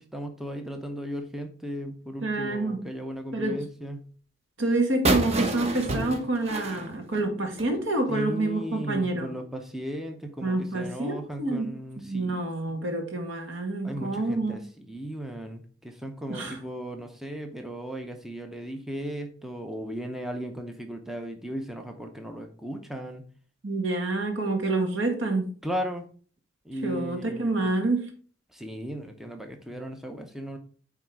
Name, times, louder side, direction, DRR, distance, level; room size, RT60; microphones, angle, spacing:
voice 1, 0.0-4.1 8.1-12.8 13.8-23.3 25.6-26.0 26.7-27.6 28.5-30.6, equal, ahead, 4 dB, 0.7 m, -36 dB
voice 2, 2.2-2.8 3.3-3.6 4.6-9.3 10.4-14.6 16.3-16.6 23.6-25.5 26.8-28.1, right 2 dB, 80° right, 3 dB, 1.9 m, -28 dB
sound 1, 5.1-7.8, right 2 dB, 35° right, 1.0 m, -28 dB
9.0 x 3.6 x 4.6 m, 0.42 s
head